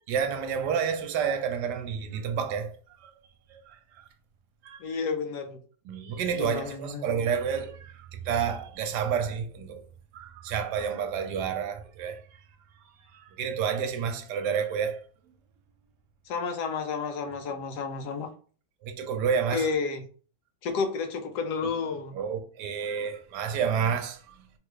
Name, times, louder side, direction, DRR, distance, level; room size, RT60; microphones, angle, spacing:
voice 1, 0.1-2.8 3.0-3.1 3.5-4.0 4.6-5.0 5.9-9.8 10.1-12.4 13.1-15.0 18.8-19.7 22.1-24.5, right 7 dB, 85° right, 1.2 m, -30 dB
voice 2, 4.8-5.6 6.4-7.0 16.3-18.3 19.5-20.1 20.6-22.2, left 5 dB, 80° left, 1.2 m, -31 dB
3.4 x 2.3 x 3.1 m
omnidirectional pair, 1.8 m